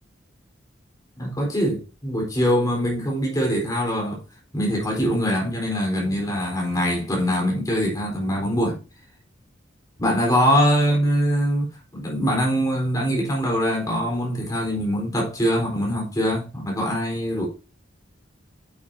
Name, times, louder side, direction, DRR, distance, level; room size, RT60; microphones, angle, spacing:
voice 1, 1.2-4.2 4.5-8.8 10.0-11.7 11.9-17.5, equal, 20° left, 4.1 m, -23 dB
9.0 x 7.2 x 2.8 m
head